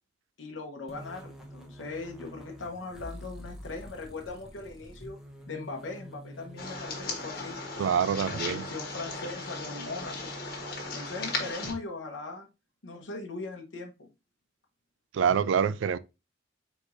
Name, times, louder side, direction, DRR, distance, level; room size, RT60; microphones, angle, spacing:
voice 1, 0.4-5.2 5.5-7.6 8.2-10.4 10.9-12.5 12.8-14.1, left 3 dB, 85° left, 0.9 m, -39 dB
sound 1, 0.9-11.8, equal, ahead, 0.8 m, -47 dB
sound 2, 6.6-11.7, left 3 dB, 50° left, 1.3 m, -37 dB
voice 2, 7.8-8.6 15.1-16.0, right 7 dB, 85° right, 0.3 m, -26 dB
4.8 x 4.1 x 2.5 m
head